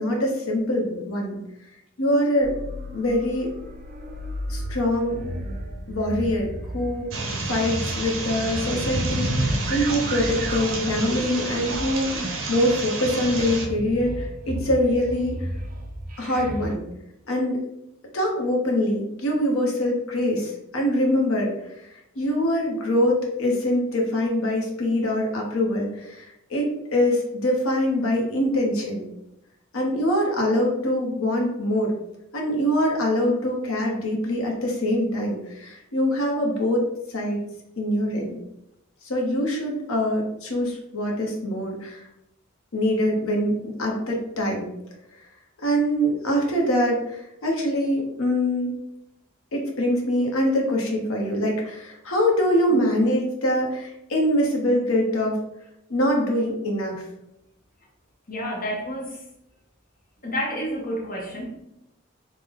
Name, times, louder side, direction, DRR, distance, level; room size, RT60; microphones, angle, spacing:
voice 1, 0.0-1.4 2.0-2.5 2.9-3.5 4.5-5.2 5.9-15.5 16.2-16.8 17.3-17.6 18.1-29.0 29.7-31.9 32.3-36.8 37.1-37.4 37.8-38.4 39.1-42.0 42.7-44.7 45.6-48.7 49.5-55.4 55.9-57.0, left 1 dB, 85° left, 0 dB, 0.8 m, -24 dB
sound 1, 2.4-16.7, right 1 dB, 40° right, 0.4 m, -34 dB
sound 2, 7.1-13.7, right 2 dB, 80° right, 0.6 m, -29 dB
voice 2, 58.3-59.2 60.2-61.6, equal, 40° left, -2 dB, 0.6 m, -30 dB
3.2 x 2.0 x 3.6 m, 0.84 s
head